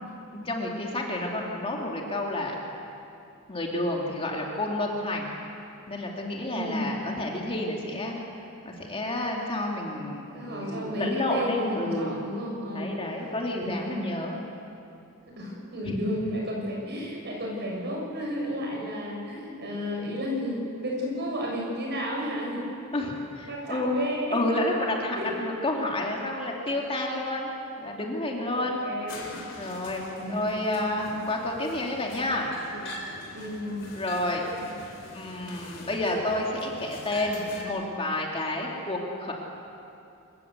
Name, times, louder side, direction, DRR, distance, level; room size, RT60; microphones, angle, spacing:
voice 1, 0.3-2.6 3.5-5.3 5.9-8.2 8.6-12.2 12.7-14.4 15.8-16.0 22.9-24.0 24.3-28.8 29.6-32.5 33.9-34.5 35.1-39.3, left 1 dB, 25° left, -1 dB, 2.7 m, -30 dB
voice 2, 6.5-7.1 10.3-13.0 13.6-14.1 15.4-22.6 23.5-24.5 25.2-25.3 28.5-29.4 30.2-30.6 33.3-33.8, equal, 50° right, -2 dB, 6.9 m, -32 dB
sound 1, 29.1-37.6, left 1 dB, 60° left, 3.8 m, -43 dB
27.0 x 15.5 x 8.2 m, 2.7 s
head